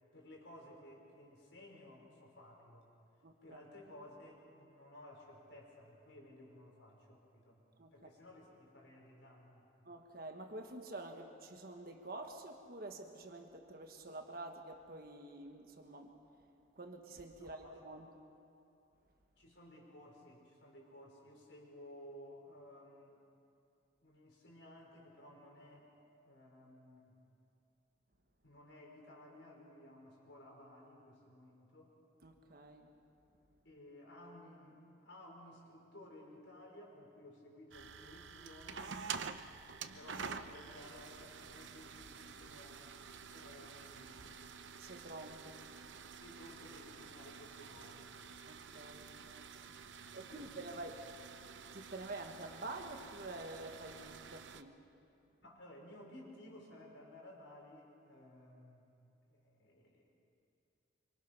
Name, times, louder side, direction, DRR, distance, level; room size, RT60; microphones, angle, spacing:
voice 1, 0.1-2.9 3.4-7.6 7.9-9.7 17.4-17.8 19.4-23.2 24.0-25.9 26.2-27.2 28.4-31.9 33.6-39.0 39.9-42.8 43.3-44.2 46.2-48.1 49.8-51.0 55.4-58.9 59.3-60.1, left 1 dB, 85° left, -1 dB, 5.6 m, -56 dB
voice 2, 3.2-3.6 7.8-7.9 9.8-16.1 16.8-18.1 32.2-32.9 44.8-45.6 48.4-49.5 49.9-51.0 51.7-54.8, right 2 dB, 50° right, 4 dB, 1.5 m, -48 dB
sound 1, 37.7-54.6, right 6 dB, 80° right, 0.8 m, -49 dB
26.0 x 25.0 x 6.1 m, 2.7 s
head